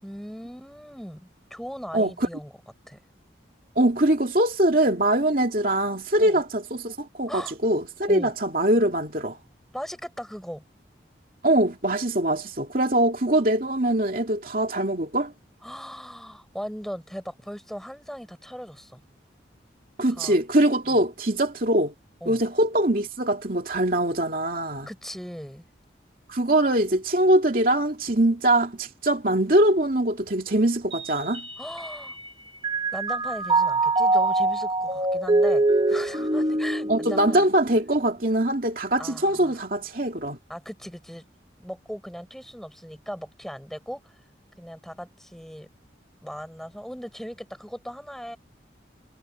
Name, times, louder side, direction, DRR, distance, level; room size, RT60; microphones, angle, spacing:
voice 1, 0.0-2.5 2.9-3.0 6.2-6.4 7.3-7.6 8.1-8.3 9.7-10.6 15.6-19.0 20.1-20.4 20.9-21.0 22.2-22.4 24.9-25.7 31.6-32.2 32.9-37.5 39.0-39.6 40.5-41.3 41.6-44.2 44.6-45.7 46.2-48.4, equal, ahead, 6.9 m, -38 dB
voice 2, 1.9-2.3 3.8-9.4 11.4-15.3 20.0-21.9 22.3-24.9 26.3-31.4 36.9-40.4, right 1 dB, 50° right, 2.7 m, -23 dB
Mallet percussion, 30.9-32.3 32.6-38.1, right 2 dB, 25° right, 1.4 m, -24 dB
head